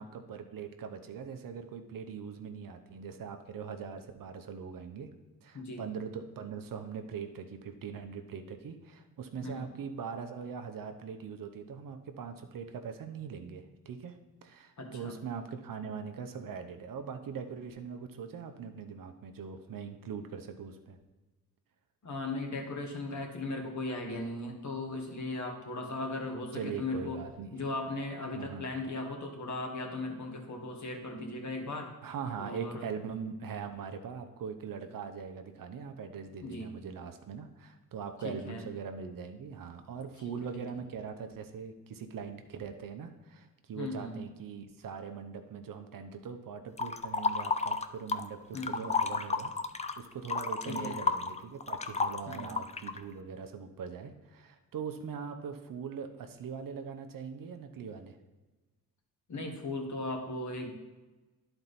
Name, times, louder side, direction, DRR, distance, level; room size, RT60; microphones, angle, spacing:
voice 1, 0.0-5.1 5.4-14.2 14.4-21.0 26.5-27.5 28.3-28.6 32.0-49.5 50.0-58.2, right 6 dB, 65° right, 6 dB, 0.8 m, -41 dB
voice 2, 5.5-5.9 9.4-9.7 14.8-15.1 22.0-27.2 27.5-31.9 32.4-32.9 36.4-36.7 38.2-38.6 40.2-40.5 43.7-44.2 48.5-48.8 50.7-51.0 52.3-52.5 59.3-60.7, left 2 dB, 55° left, 1 dB, 1.7 m, -37 dB
sound 1, 46.8-48.3 48.6-53.0, left 4 dB, 20° left, 0.4 m, -32 dB
10.5 x 4.5 x 4.1 m, 1.2 s
cardioid pair, 65°, 35 cm